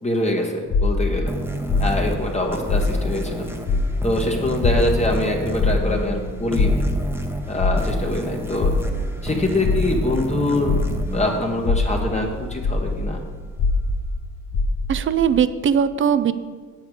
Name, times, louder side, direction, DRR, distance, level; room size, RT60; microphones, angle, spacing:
voice 1, 0.0-1.3 1.8-3.5 4.0-6.8 7.5-8.7 9.2-10.8 11.1-13.2, left 1 dB, 20° left, 1 dB, 1.1 m, -24 dB
sound 1, 0.7-3.4 3.6-11.2 11.6-15.1, left 3 dB, 65° left, 0.9 m, -23 dB
sound 2, 1.3-12.4, right 1 dB, 5° right, 1.0 m, -31 dB
voice 2, 14.9-16.3, right 8 dB, 40° right, 14 dB, 0.5 m, -19 dB
8.2 x 7.2 x 4.8 m, 1.5 s
cardioid pair, 90°, 30 cm